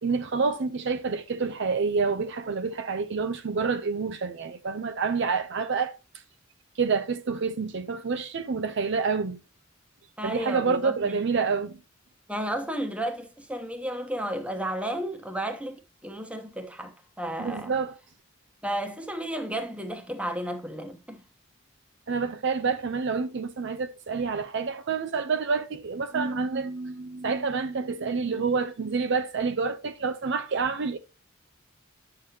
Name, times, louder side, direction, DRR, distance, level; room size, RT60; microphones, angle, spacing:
voice 1, 0.0-6.0 6.8-9.4 10.2-11.8 17.4-18.0 22.1-31.0, right 5 dB, 60° right, 0.6 m, -28 dB
voice 2, 10.2-11.2 12.3-17.8 18.6-21.2, right 1 dB, 5° right, 1.0 m, -33 dB
8.9 x 6.6 x 2.8 m
head